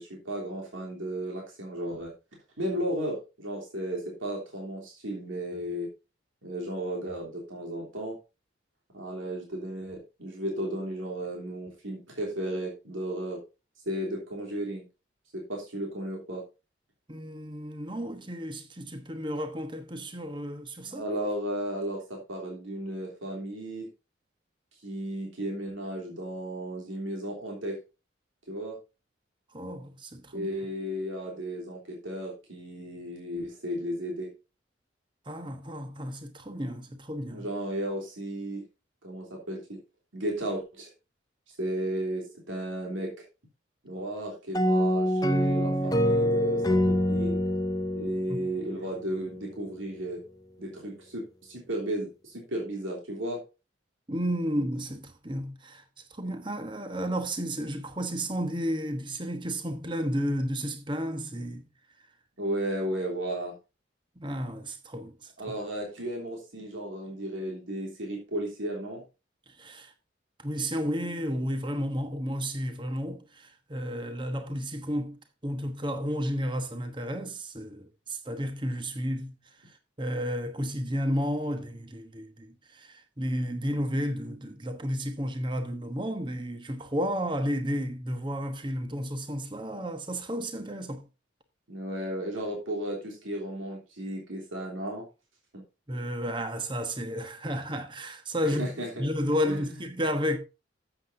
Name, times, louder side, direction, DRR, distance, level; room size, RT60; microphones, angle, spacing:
voice 1, 0.0-2.1 2.6-5.9 6.4-8.2 8.9-13.4 13.8-14.8 15.3-16.4 20.9-23.9 24.8-27.8 28.5-28.8 30.3-34.3 37.3-38.6 39.0-39.8 40.1-40.9 41.6-43.2 43.8-47.4 47.9-50.2 50.6-53.4 62.4-63.6 65.4-69.0 91.7-95.1 95.5-95.6 98.4-99.1 99.4-99.7, right 1 dB, 85° right, 3.2 m, -34 dB
voice 2, 17.1-21.0 29.5-30.5 35.3-37.5 48.3-48.5 54.1-55.8 56.1-61.7 64.2-65.6 69.5-69.9 70.4-91.1 95.9-98.7 99.0-100.4, equal, 25° right, 1.1 m, -32 dB
sound 1, 44.5-49.2, left 1 dB, 20° left, 0.7 m, -26 dB
12.5 x 8.1 x 2.6 m
head